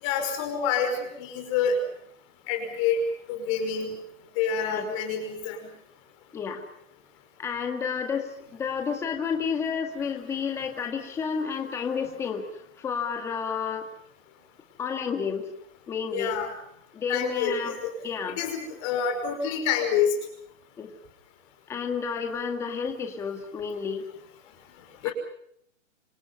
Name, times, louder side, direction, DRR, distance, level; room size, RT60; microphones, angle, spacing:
voice 1, 0.0-1.8 2.5-3.0 3.3-3.9 4.4-5.6 16.1-16.5 17.1-17.9 18.3-20.2 25.0-25.1, left 7 dB, 25° left, 5 dB, 5.4 m, -27 dB
voice 2, 7.4-13.9 14.8-15.5 15.9-16.4 16.9-17.8 18.0-18.4 20.8-20.9 21.7-24.1 25.0-25.1, left 6 dB, 5° left, 4 dB, 2.0 m, -31 dB
27.5 x 26.5 x 5.6 m, 0.71 s
hypercardioid pair, 175°, 39 cm